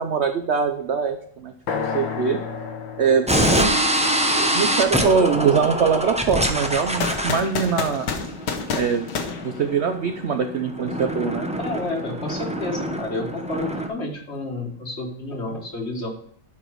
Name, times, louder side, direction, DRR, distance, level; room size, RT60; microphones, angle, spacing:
voice 1, 0.0-1.5 1.8-2.4 2.9-3.8 4.3-8.1 8.8-9.1 9.4-11.5, right 6 dB, 65° right, 7 dB, 0.6 m, -23 dB
sound 1, 1.7-5.6, left 5 dB, 85° left, 1.8 m, -33 dB
sound 2, 3.3-13.9, right 1 dB, 5° right, 0.6 m, -25 dB
sound 3, 7.0-10.2, left 5 dB, 70° left, 1.7 m, -29 dB
voice 2, 11.6-16.1, left 2 dB, 35° left, 2 dB, 1.8 m, -30 dB
12.0 x 5.0 x 4.7 m, 0.63 s
omnidirectional pair, 2.0 m